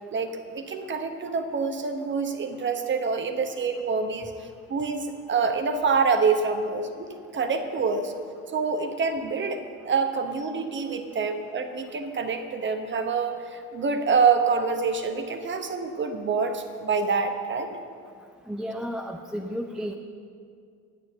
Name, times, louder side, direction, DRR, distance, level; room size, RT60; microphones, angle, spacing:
voice 1, 0.1-4.3 4.7-8.1 8.5-17.7, right 5 dB, 25° right, 7 dB, 1.1 m, -26 dB
voice 2, 18.5-19.9, equal, ahead, 3 dB, 0.5 m, -32 dB
9.3 x 9.3 x 6.6 m, 2.2 s
figure-of-eight pair, 60°, 43 cm